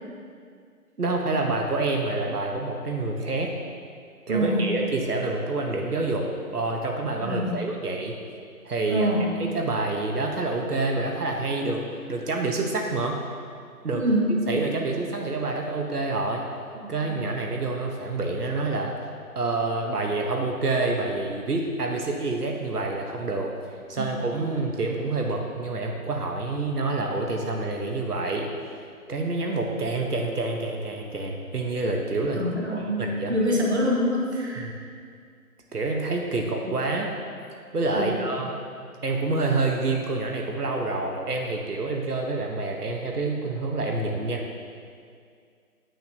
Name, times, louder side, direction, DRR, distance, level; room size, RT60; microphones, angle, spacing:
voice 1, 1.0-3.5 4.3-8.1 8.6-9.1 9.4-11.8 12.1-13.2 13.8-14.0 14.5-16.5 16.9-19.0 19.3-23.5 23.9-28.5 29.1-32.4 33.0-33.4 34.6-34.7 35.7-37.1 37.7-44.4, right 3 dB, 75° right, 1 dB, 1.1 m, -27 dB
voice 2, 4.3-4.8 7.2-7.6 8.9-9.3 13.9-14.4 23.9-24.1 32.3-34.7 36.6-36.7 37.9-38.2, equal, 45° right, -2 dB, 1.3 m, -25 dB
9.2 x 8.7 x 2.8 m, 2.2 s
figure-of-eight pair, 175°, 46 cm